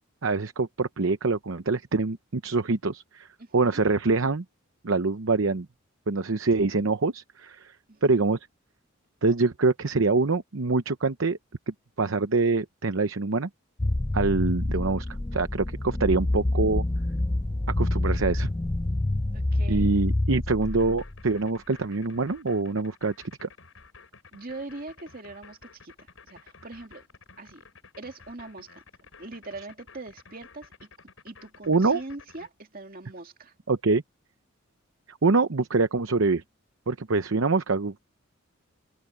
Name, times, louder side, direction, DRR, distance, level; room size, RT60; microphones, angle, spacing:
voice 1, 0.2-3.3 3.5-4.4 4.8-5.7 6.1-7.8 8.0-8.4 9.2-11.4 11.7-13.5 14.1-15.1 15.3-16.8 17.8-18.5 19.7-23.1 23.4-23.5 31.7-32.0 33.7-34.0 35.1-36.4 36.9-38.0, right 3 dB, 65° right, 0.8 m, -25 dB
voice 2, 3.4-3.8 7.9-8.2 19.3-20.0 24.3-27.0 27.4-27.6 28.0-28.8 29.2-30.9 31.2-33.5, right 2 dB, 45° right, 2.5 m, -42 dB
sound 1, 13.8-21.3, left 1 dB, 15° left, 0.5 m, -27 dB
sound 2, 20.6-32.5, left 4 dB, 70° left, 5.5 m, -52 dB
head